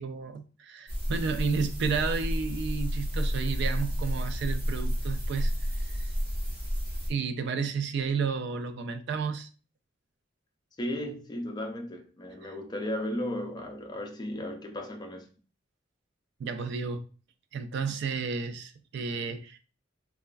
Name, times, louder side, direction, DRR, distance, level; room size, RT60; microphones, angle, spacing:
voice 1, 0.0-5.5 5.9-6.1 7.1-9.5 12.4-12.5 16.4-17.0 17.5-19.6, right 5 dB, 65° right, 0.3 m, -32 dB
sound 1, 0.9-7.1, equal, 30° right, 0.9 m, -31 dB
voice 2, 10.8-15.3, left 1 dB, 20° left, 0.4 m, -35 dB
3.0 x 2.3 x 2.3 m
head